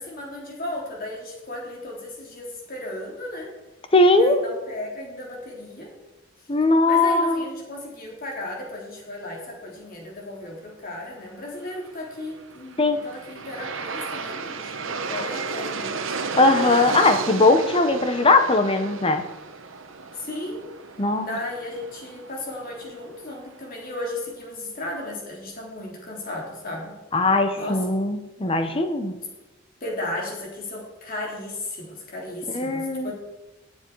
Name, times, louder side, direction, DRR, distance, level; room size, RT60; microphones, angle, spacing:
voice 1, 0.0-3.5 4.2-5.9 6.9-16.2 20.1-20.6 21.2-26.9 27.6-27.8 29.8-33.1, left 1 dB, 45° left, -1 dB, 3.6 m, -35 dB
voice 2, 3.9-4.4 6.5-7.4 12.8-13.0 16.4-19.2 21.0-21.4 27.1-29.1 32.5-33.1, left 2 dB, 30° left, 8 dB, 1.0 m, -19 dB
Aircraft, 12.5-23.6, right 4 dB, 85° right, 1.0 m, -33 dB
18.5 x 7.5 x 4.7 m, 1.1 s
head